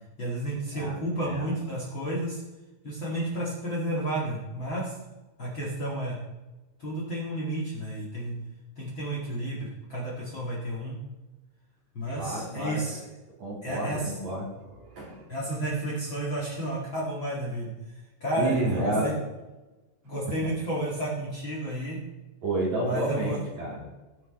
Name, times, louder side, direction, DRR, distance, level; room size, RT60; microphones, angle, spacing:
voice 1, 0.2-2.4 2.8-5.0 5.4-6.2 6.8-8.3 8.7-11.0 11.9-13.0 13.6-14.1 15.3-17.9 18.2-19.2 20.0-22.0 22.8-23.4, right 1 dB, 60° left, -5 dB, 1.2 m, -31 dB
voice 2, 12.1-12.8 13.4-15.2 18.4-19.1 22.4-23.8, right 2 dB, 35° right, -5 dB, 4.5 m, -30 dB
19.0 x 6.4 x 4.3 m, 1.1 s
omnidirectional pair, 5.9 m